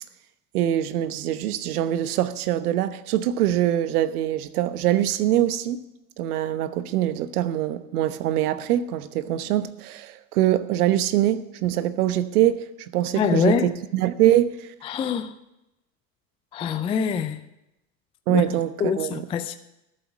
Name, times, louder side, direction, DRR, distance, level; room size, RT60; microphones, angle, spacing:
voice 1, 0.5-5.8 6.2-14.7 18.3-19.3, right 12 dB, 65° right, 1.1 m, -23 dB
voice 2, 13.2-13.7 14.8-15.3 16.5-17.4 18.3-18.4 18.8-19.6, left 7 dB, 15° left, 0.3 m, -24 dB
13.0 x 7.6 x 7.0 m
hypercardioid pair, 85°, 48 cm